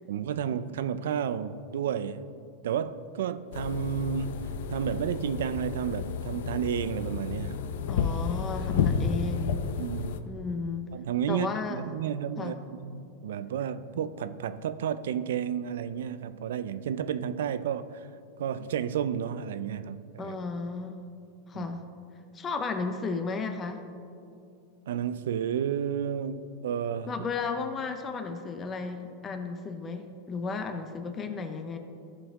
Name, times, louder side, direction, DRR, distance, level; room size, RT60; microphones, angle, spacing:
voice 1, 0.1-2.3 2.6-4.4 4.7-7.6 9.8-10.2 10.9-18.1 18.4-20.4 21.5-21.7 24.9-27.1, right 8 dB, 85° right, 14 dB, 0.4 m, -31 dB
sound 1, 3.5-10.2, left 6 dB, 70° left, 0.5 m, -31 dB
voice 2, 7.9-9.6 10.3-10.9 11.3-11.8 12.4-12.6 20.2-21.1 21.5-21.8 22.3-23.8 27.1-31.8, left 4 dB, 20° left, 7 dB, 0.6 m, -34 dB
14.0 x 5.4 x 3.6 m, 2.5 s
supercardioid pair, 150°, 0 cm